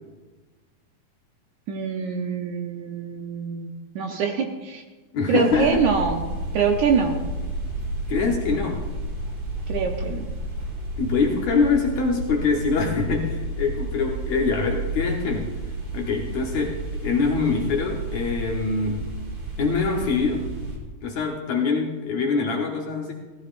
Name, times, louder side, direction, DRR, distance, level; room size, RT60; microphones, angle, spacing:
voice 1, 1.7-4.8 5.3-7.2 9.7-10.3, right 6 dB, 70° right, 3 dB, 1.9 m, -25 dB
voice 2, 5.1-5.9 8.1-8.8 11.0-15.5 15.9-19.1 19.6-20.5 21.0-23.1, left 4 dB, 65° left, 0 dB, 2.0 m, -24 dB
sound 1, 5.5-20.8, right 1 dB, 30° right, 2.4 m, -31 dB
18.0 x 15.0 x 2.5 m, 1.3 s
omnidirectional pair, 4.1 m